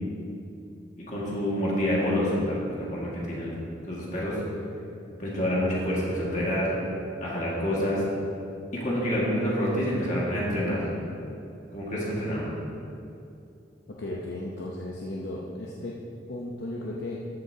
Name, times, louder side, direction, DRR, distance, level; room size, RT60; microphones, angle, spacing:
voice 1, 1.0-3.5 3.8-4.4 5.2-6.7 7.2-8.0 8.7-10.9 11.7-12.5, equal, 40° left, -6 dB, 1.9 m, -27 dB
voice 2, 13.9-16.0 16.3-17.2, left 1 dB, 65° left, -3 dB, 0.8 m, -35 dB
13.5 x 8.0 x 2.8 m, 2.7 s
head